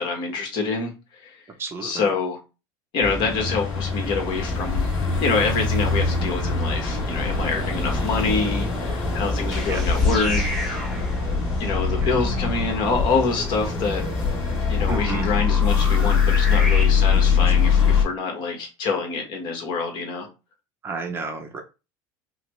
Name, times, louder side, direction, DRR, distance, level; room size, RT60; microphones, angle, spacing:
voice 1, 0.0-1.4 1.8-2.4 2.9-4.9 5.2-10.4 10.8-10.9 11.6-14.0 14.7-20.3, left 4 dB, 50° left, 1.3 m, -26 dB
voice 2, 1.6-2.0 9.7-9.8 14.9-15.3 17.4-17.5 20.8-21.6, right 4 dB, 25° right, 0.6 m, -31 dB
sound 1, 3.0-18.0, left 5 dB, 25° left, 2.3 m, -23 dB
sound 2, 9.4-16.8, left 1 dB, 5° left, 1.1 m, -34 dB
5.5 x 2.1 x 3.1 m
cardioid pair, 155°, 10 cm